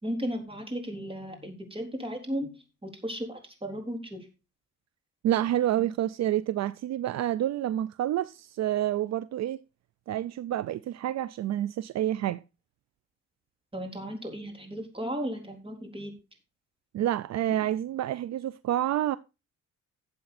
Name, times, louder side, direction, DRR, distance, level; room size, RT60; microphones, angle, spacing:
voice 1, 0.0-2.5 2.8-4.3 13.7-16.1 17.5-17.6, equal, 20° right, 3.9 m, -35 dB
voice 2, 5.2-9.6 10.1-12.4 16.9-19.2, right 12 dB, 60° right, 0.5 m, -28 dB
12.0 x 7.7 x 4.2 m
cardioid pair, 90°, 30 cm